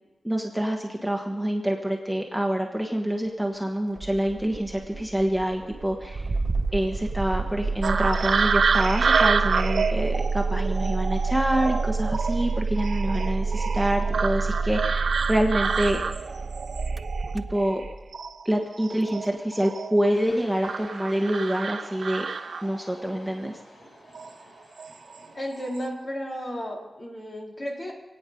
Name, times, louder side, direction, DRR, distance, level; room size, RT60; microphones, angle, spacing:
voice 1, 0.2-6.2 6.7-16.0 17.3-17.8 18.4-22.3 22.6-23.5, right 1 dB, ahead, 2 dB, 1.4 m, -26 dB
Engine starting, 4.0-18.1, right 4 dB, 45° right, 0.6 m, -28 dB
sound 1, 7.8-17.8 18.1-20.1 20.6-22.9 24.1-24.3 24.8-25.3 25.5-25.8, right 5 dB, 85° right, 0.7 m, -28 dB
sound 2, 20.1-25.5, left 1 dB, 70° left, 5.4 m, -49 dB
voice 2, 25.3-27.9, equal, 50° left, -2 dB, 4.0 m, -33 dB
27.5 x 9.2 x 5.3 m, 1.2 s
wide cardioid pair, 90°, 0 cm